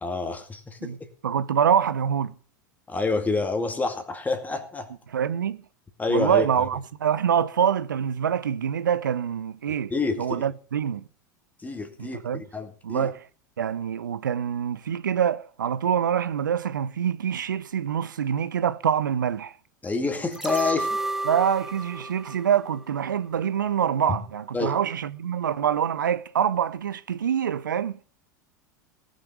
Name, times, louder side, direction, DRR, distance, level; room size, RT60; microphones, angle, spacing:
voice 1, 0.0-0.9 2.9-4.9 6.0-6.7 9.9-10.4 11.6-13.1 19.8-21.0 24.1-24.2 24.5-24.8, left 3 dB, 15° left, 2.2 m, -28 dB
voice 2, 1.2-2.3 5.1-5.6 6.1-9.9 10.2-11.0 12.0-12.4 12.8-13.2 13.6-19.5 21.3-28.0, right 8 dB, 80° right, 0.8 m, -25 dB
sound 1, 20.3-23.5 23.8-23.9, right 2 dB, 5° right, 0.9 m, -32 dB
18.0 x 6.6 x 6.3 m
hypercardioid pair, 90°, 10 cm